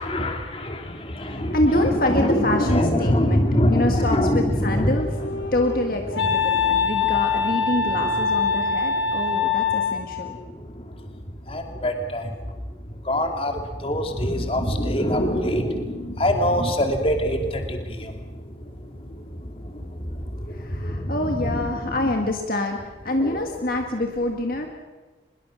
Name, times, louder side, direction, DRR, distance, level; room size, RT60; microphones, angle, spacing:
voice 1, 0.0-5.0 6.5-6.8 8.0-8.1 10.4-10.9 11.5-12.3 13.0-18.2 19.0-22.1 23.2-23.4, equal, 30° left, 4 dB, 2.4 m, -24 dB
voice 2, 1.3-5.2 5.5-10.4 20.5-24.7, left 1 dB, 50° left, 3 dB, 1.8 m, -26 dB
Wind instrument woodwind instrument, 4.8-10.2, left 5 dB, 75° left, 1.8 m, -24 dB
23.5 x 21.5 x 6.3 m, 1.3 s
head